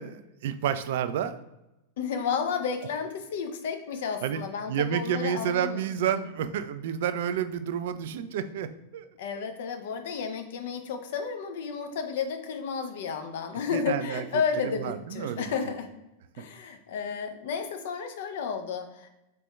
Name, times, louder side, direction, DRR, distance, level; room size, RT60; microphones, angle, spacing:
voice 1, 0.0-1.4 4.2-4.4 4.7-9.1 9.4-9.5 13.7-14.2 14.6-15.5, right 9 dB, 55° right, 11 dB, 0.3 m, -30 dB
voice 2, 2.0-6.3 9.2-15.9 16.3-19.1, left 6 dB, 55° left, 7 dB, 0.5 m, -32 dB
4.3 x 4.2 x 2.3 m, 0.94 s
figure-of-eight pair, 90°, 0 cm